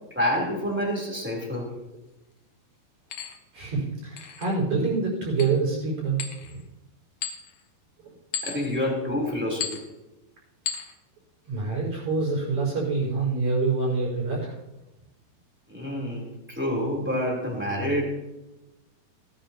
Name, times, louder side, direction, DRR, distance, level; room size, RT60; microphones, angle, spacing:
voice 1, 0.1-1.7 8.4-9.8 15.7-18.2, left 1 dB, 5° right, -3 dB, 2.7 m, -28 dB
sound 1, 1.5-1.6 3.1-3.4 4.2-4.5 5.4-5.6 6.2-6.6 7.2-7.6 8.3-8.8 9.6-9.9 10.7-10.9, left 7 dB, 65° left, 1.8 m, -34 dB
voice 2, 3.5-6.2 8.0-8.1 11.4-14.6, right 4 dB, 45° right, -3 dB, 5.9 m, -26 dB
18.5 x 11.5 x 2.9 m, 0.98 s
omnidirectional pair, 4.8 m